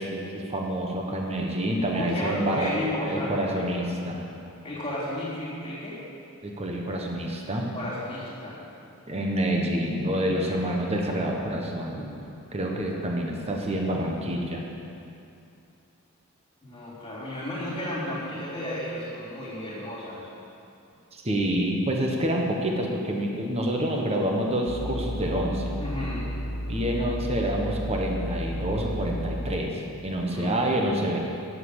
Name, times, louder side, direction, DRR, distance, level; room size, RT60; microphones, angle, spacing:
voice 1, 0.0-2.7 3.0-4.2 6.4-7.7 9.1-12.1 12.5-14.6 21.1-25.7 26.7-29.7 30.0-31.2, right 1 dB, 30° right, 0 dB, 1.3 m, -27 dB
voice 2, 1.9-3.8 4.6-6.0 7.7-8.6 10.4-10.8 16.6-20.3 25.8-26.3 30.3-30.6, left 1 dB, 25° left, -9 dB, 3.6 m, -33 dB
sound 1, 24.7-29.5, equal, 65° left, 0.8 m, -32 dB
11.0 x 7.6 x 8.2 m, 2.6 s
head